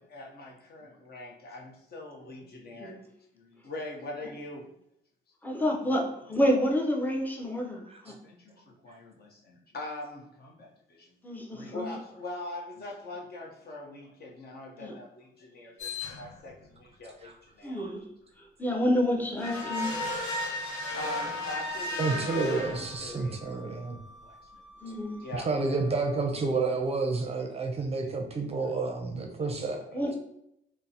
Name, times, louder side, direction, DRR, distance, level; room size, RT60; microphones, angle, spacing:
voice 1, 0.0-3.0 3.3-4.7 8.1-11.1 11.5-17.9 20.3-23.5 24.2-24.6 24.9-25.8 28.6-28.7 29.2-29.5 29.9-30.1, left 2 dB, 50° left, 0 dB, 0.8 m, -43 dB
voice 2, 5.4-8.1 11.2-11.9 14.8-15.0 17.6-18.0 18.6-20.0 22.1-22.2 24.8-25.2 29.9-30.2, equal, 10° left, 1 dB, 0.6 m, -29 dB
sound 1, 15.8-16.5 19.4-23.3, left 2 dB, 90° left, 0.8 m, -34 dB
voice 3, 22.0-24.0 25.3-29.8, right 3 dB, 30° right, 3 dB, 0.5 m, -30 dB
Wind instrument woodwind instrument, 22.5-26.6, right 2 dB, 30° left, 1.2 m, -53 dB
3.7 x 2.0 x 2.7 m, 0.79 s
cardioid pair, 90°, 20 cm